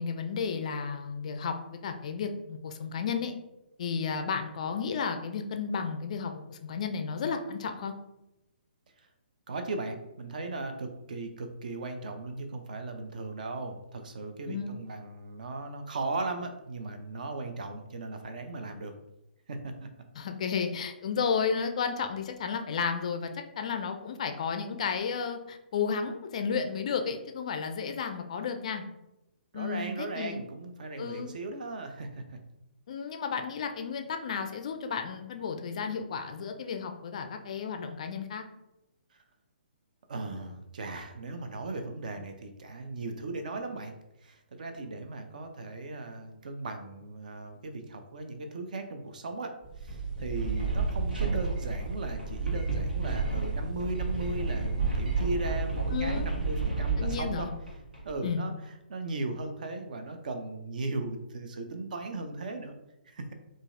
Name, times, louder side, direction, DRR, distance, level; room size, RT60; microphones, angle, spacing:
voice 1, 0.0-1.5 1.8-3.3 3.8-7.9 14.5-14.7 20.2-23.3 23.6-28.8 29.5-30.4 31.0-31.3 32.9-38.4 55.9-56.3 57.0-57.5 58.2-58.4, left 6 dB, 40° left, 6 dB, 0.3 m, -32 dB
voice 2, 9.5-18.9 19.5-19.9 29.5-32.4 40.1-44.0 44.2-57.5 58.0-58.5 58.9-62.7 63.1-63.3, right 2 dB, 50° right, 6 dB, 0.4 m, -37 dB
sound 1, 49.6-58.2, right 4 dB, 75° right, 1.3 m, -31 dB
3.8 x 2.4 x 2.5 m, 0.91 s
figure-of-eight pair, 130°, 5 cm